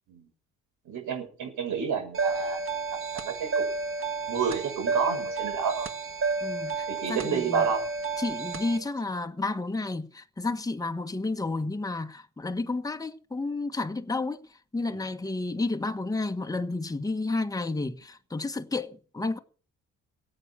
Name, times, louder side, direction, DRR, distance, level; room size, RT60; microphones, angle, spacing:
voice 1, 0.8-2.6 2.9-3.7 4.3-5.9 6.9-7.8 14.9-15.0, right 6 dB, 85° right, 6.7 m, -30 dB
sound 1, 2.1-8.8, right 4 dB, 45° right, 1.7 m, -31 dB
voice 2, 6.4-7.7 8.2-19.4, left 3 dB, 10° left, 1.4 m, -31 dB
16.0 x 8.8 x 7.5 m
cardioid pair, 90°, 30 cm